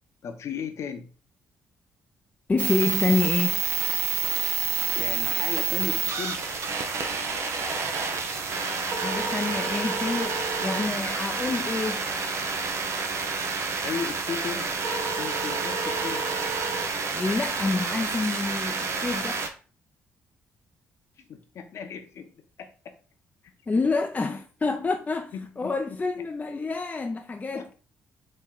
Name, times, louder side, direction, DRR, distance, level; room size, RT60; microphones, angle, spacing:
voice 1, 0.2-1.1 4.9-6.4 13.8-14.7 15.1-16.2 21.3-22.3 22.6-22.9 25.3-26.0 27.5-27.7, left 6 dB, 60° left, 0.7 m, -36 dB
voice 2, 2.5-3.6 9.0-12.1 17.1-19.4 23.7-27.7, left 3 dB, 25° left, 0.4 m, -28 dB
sound 1, 2.6-19.5, right 5 dB, 60° right, 0.6 m, -28 dB
4.3 x 2.1 x 3.8 m
supercardioid pair, 55°, 5 cm